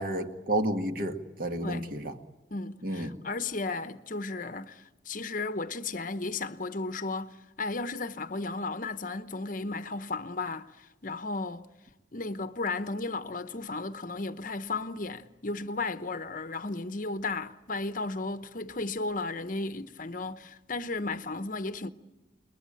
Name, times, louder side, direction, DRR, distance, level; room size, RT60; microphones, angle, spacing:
voice 1, 0.0-2.1 2.8-3.1, right 1 dB, 45° right, 1.9 m, -31 dB
voice 2, 2.5-11.7 12.1-21.9, left 3 dB, 40° left, 0.9 m, -34 dB
29.0 x 21.5 x 8.9 m
head